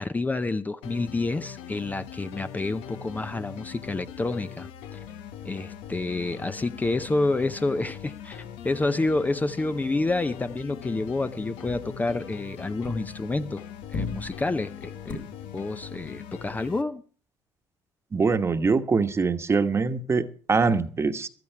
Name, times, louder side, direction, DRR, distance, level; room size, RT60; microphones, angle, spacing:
voice 1, 0.0-5.0 5.4-13.6 13.9-15.2 15.5-17.0, left 2 dB, 20° left, 0.7 m, -29 dB
sound 1, 0.8-16.8, left 9 dB, 80° left, 1.2 m, -41 dB
sound 2, 6.7-8.7 9.0-9.4 9.6-13.5 13.8-15.1, left 4 dB, 60° left, 3.7 m, -41 dB
voice 2, 18.1-21.3, right 4 dB, 30° right, 1.3 m, -23 dB
14.5 x 12.5 x 4.6 m
supercardioid pair, 80°, 9 cm